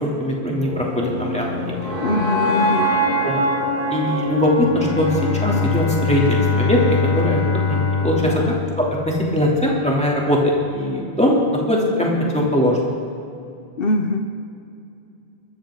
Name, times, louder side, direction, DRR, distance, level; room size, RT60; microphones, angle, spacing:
voice 1, 0.0-1.9 3.2-3.4 3.9-6.8 7.1-10.4 10.7-12.8, left 1 dB, 5° left, -3 dB, 3.0 m, -21 dB
sound 1, 0.6-6.7, equal, 60° right, 3.4 m, -24 dB
voice 2, 2.0-3.0 8.2-8.6 12.2-12.5 13.8-14.3, left 1 dB, 60° left, 6 dB, 1.0 m, -23 dB
Bowed string instrument, 4.6-9.5, left 5 dB, 45° left, 1.4 m, -23 dB
23.0 x 14.5 x 3.9 m, 2.5 s
omnidirectional pair, 1.1 m